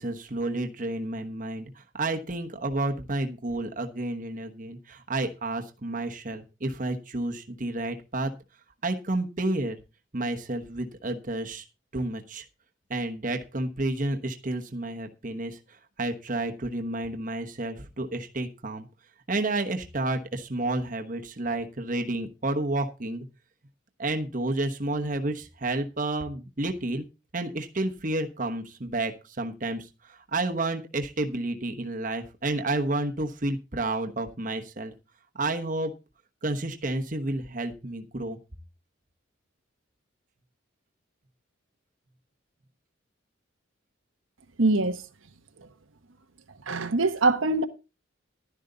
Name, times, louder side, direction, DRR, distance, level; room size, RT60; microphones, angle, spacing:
voice 1, 0.0-8.3 8.8-9.8 10.1-11.6 11.9-12.4 12.9-15.6 16.0-18.9 19.3-23.3 24.0-27.0 27.3-34.9 35.4-35.9 36.4-38.4, right 2 dB, 40° right, 1.1 m, -30 dB
voice 2, 44.6-45.0 46.7-47.6, right 3 dB, 80° right, 1.2 m, -23 dB
12.0 x 10.5 x 4.0 m
head